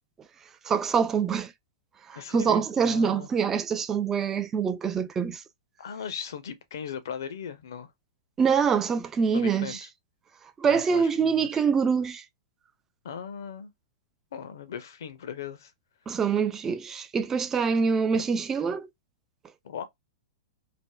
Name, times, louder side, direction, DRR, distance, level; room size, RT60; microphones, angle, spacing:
voice 1, 0.7-1.5 2.1-5.4 8.4-9.8 10.6-12.2 16.1-18.9, right 6 dB, 20° right, 0.3 m, -25 dB
voice 2, 2.1-3.3 5.8-7.9 9.3-9.9 10.7-11.6 13.0-13.7 14.3-15.7 18.1-18.2 19.6-19.8, left 7 dB, 65° left, 0.6 m, -38 dB
3.3 x 2.0 x 2.2 m
hypercardioid pair, 110°, 2 cm